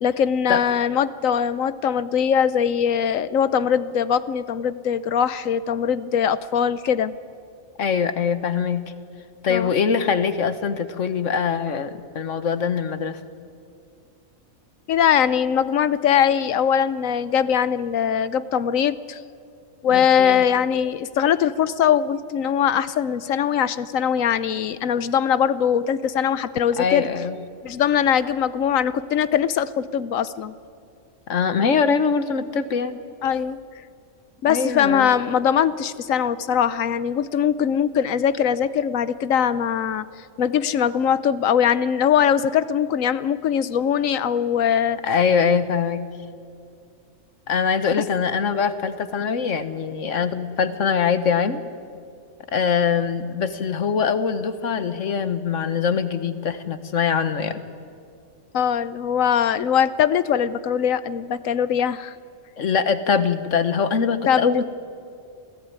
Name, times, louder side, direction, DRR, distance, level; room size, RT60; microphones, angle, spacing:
voice 1, 0.0-7.1 9.5-9.7 14.9-19.2 19.8-27.1 27.6-30.5 33.2-33.6 34.4-45.0 58.5-62.2 64.3-64.6, left 8 dB, 90° left, 15 dB, 1.2 m, -21 dB
voice 2, 7.8-8.8 9.4-13.2 19.9-20.4 26.8-27.4 31.3-33.0 34.5-35.1 45.0-46.0 47.5-51.6 52.5-57.6 62.6-64.6, left 6 dB, 70° left, 11 dB, 1.5 m, -23 dB
27.5 x 16.5 x 9.6 m, 2.4 s
omnidirectional pair, 1.3 m